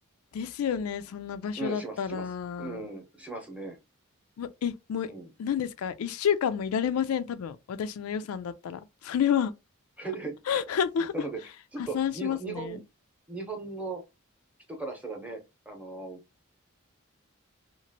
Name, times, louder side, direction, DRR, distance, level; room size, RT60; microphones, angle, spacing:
voice 1, 0.3-2.8 4.4-5.1 5.4-9.5 10.5-11.1 11.8-12.8, left 8 dB, 85° left, 0.3 m, -30 dB
voice 2, 1.6-2.2 2.6-3.8 5.1-5.3 10.0-10.4 11.1-11.4 11.7-12.8 13.3-14.0 14.7-15.4 15.7-16.2, right 3 dB, 5° right, 0.7 m, -37 dB
2.9 x 2.5 x 2.7 m
head